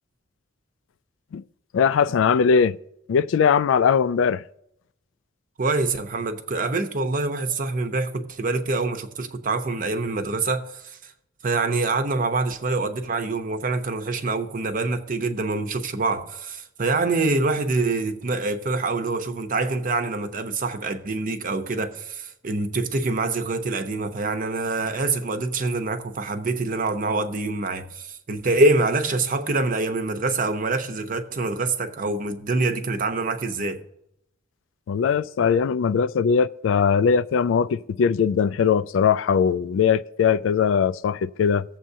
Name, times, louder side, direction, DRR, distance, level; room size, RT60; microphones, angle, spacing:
voice 1, 1.7-2.8 3.1-4.4 34.9-41.6, left 6 dB, 70° left, 0.3 m, -20 dB
voice 2, 5.6-11.1 11.4-33.8, right 3 dB, 45° right, 0.8 m, -25 dB
17.5 x 7.4 x 2.7 m
head